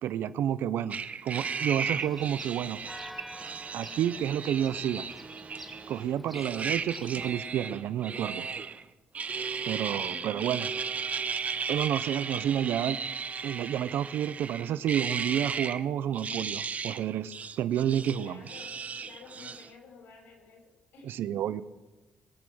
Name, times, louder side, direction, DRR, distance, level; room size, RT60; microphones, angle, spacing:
voice 1, 0.0-2.8 3.7-5.1 5.9-8.5 9.6-10.7 11.7-13.0 13.4-18.4 21.0-21.6, right 10 dB, 80° right, 15 dB, 0.5 m, -30 dB
sound 1, 0.9-6.0 6.3-8.8 9.1-15.8 16.1-17.1 17.3-19.7, right 5 dB, 40° right, 0.8 m, -35 dB
Church bell, 1.3-7.3, equal, ahead, 1.4 m, -48 dB
voice 2, 10.1-10.6 18.2-18.7 19.1-20.6 20.9-21.4, left 5 dB, 85° left, 1 dB, 5.8 m, -51 dB
21.5 x 8.5 x 6.2 m, 1.1 s
cardioid pair, 95°, 4 cm